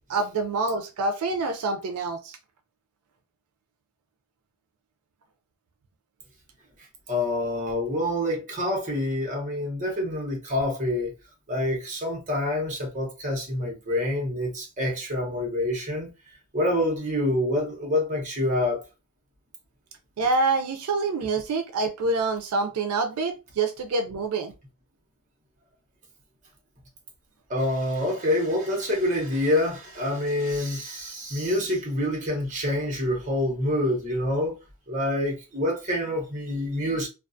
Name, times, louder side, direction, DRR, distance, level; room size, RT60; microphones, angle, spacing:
voice 1, 0.1-2.4 20.2-24.5, right 3 dB, 85° right, 0.4 m, -26 dB
voice 2, 7.1-11.1 11.5-16.1 16.5-18.8 27.5-34.6 34.9-37.1, left 1 dB, 35° right, 0.8 m, -26 dB
2.3 x 2.3 x 2.5 m
head